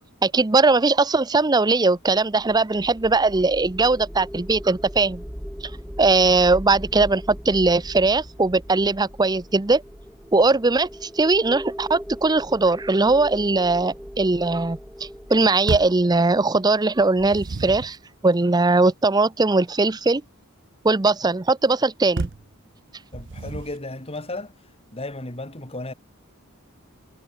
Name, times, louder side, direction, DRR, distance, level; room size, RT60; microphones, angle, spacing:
voice 1, 0.2-5.2 6.0-9.8 10.3-18.0 18.2-20.2 20.8-22.3, right 3 dB, 20° right, 0.6 m, -20 dB
sound 1, 2.1-17.2, equal, ahead, 2.9 m, -39 dB
sound 2, 15.7-16.1 17.0-18.0 22.2-22.5 23.1-23.9, right 3 dB, 55° right, 0.7 m, -30 dB
voice 2, 23.1-24.5 24.9-25.9, left 2 dB, 25° left, 2.6 m, -34 dB
head